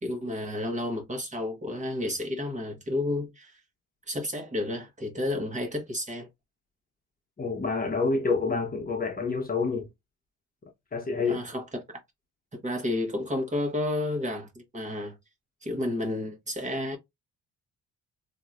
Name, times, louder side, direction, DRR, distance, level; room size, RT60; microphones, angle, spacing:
voice 1, 0.0-3.6 4.1-6.3 11.2-11.8 12.5-15.2 15.6-17.0, left 1 dB, 25° right, 1.3 m, -31 dB
voice 2, 7.4-9.9 10.9-11.4, left 4 dB, 30° left, 1.0 m, -27 dB
3.7 x 2.8 x 2.4 m
cardioid pair, 90°, 30 cm